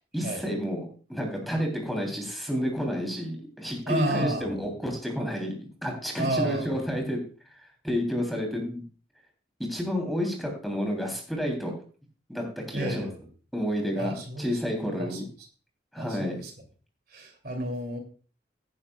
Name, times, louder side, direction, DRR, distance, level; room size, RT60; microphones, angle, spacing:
voice 1, 0.1-7.2 7.8-8.8 9.7-11.7 12.3-13.1 13.5-15.2 15.9-16.4, equal, ahead, 1 dB, 3.2 m, -30 dB
voice 2, 3.9-4.5 6.2-6.8 12.7-13.2 14.0-14.5 15.0-15.2 16.0-16.5 17.1-18.0, right 1 dB, 55° right, 4 dB, 2.9 m, -30 dB
16.5 x 10.5 x 2.3 m, 0.39 s
head